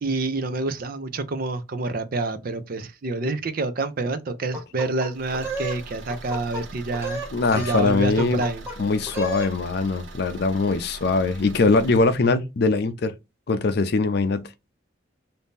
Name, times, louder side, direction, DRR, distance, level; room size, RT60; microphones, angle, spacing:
voice 1, 0.0-7.2 7.5-8.6, right 2 dB, 50° right, 0.5 m, -27 dB
sound 1, 4.5-5.8 6.1-6.6 6.9-7.9 8.2-8.8 9.1-9.5, right 1 dB, 15° right, 1.4 m, -32 dB
Car / Engine, 5.1-12.2, right 2 dB, 80° right, 0.8 m, -41 dB
voice 2, 7.3-8.4 8.8-13.1 13.5-14.4, left 3 dB, 60° left, 0.5 m, -22 dB
2.7 x 2.6 x 3.5 m
head